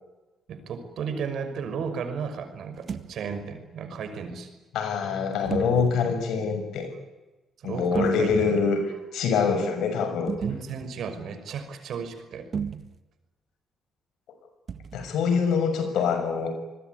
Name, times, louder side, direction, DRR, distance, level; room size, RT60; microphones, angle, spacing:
voice 1, 0.5-4.5 7.6-8.5 10.4-12.5 16.0-16.1, right 6 dB, 70° right, 8 dB, 5.8 m, -34 dB
sound 1, 2.7-3.1 5.4-6.0 7.8-8.7 10.3-10.8 12.5-13.0 14.7-15.1, right 6 dB, 50° right, 1.7 m, -33 dB
voice 2, 4.7-6.9 7.6-8.8 9.1-10.4 14.9-16.5, left 5 dB, 80° left, 8 dB, 6.5 m, -25 dB
27.5 x 21.0 x 9.7 m, 1.1 s
cardioid pair, 90°, 0 cm